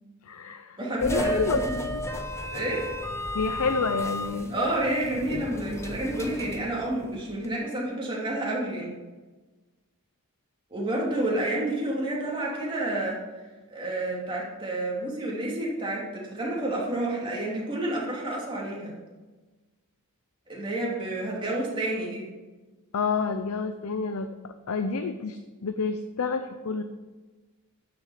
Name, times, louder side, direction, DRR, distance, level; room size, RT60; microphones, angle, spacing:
voice 1, 0.3-2.0 3.3-4.6 5.3-5.4 22.9-26.8, left 4 dB, 70° left, 8 dB, 0.6 m, -29 dB
voice 2, 0.8-1.6 2.5-2.9 4.5-8.9 10.7-13.2 13.7-18.9 20.5-22.3, right 1 dB, 20° right, -4 dB, 2.9 m, -29 dB
sound 1, 1.0-7.5, left 1 dB, 15° left, 0.8 m, -34 dB
12.0 x 7.0 x 5.0 m, 1.2 s
head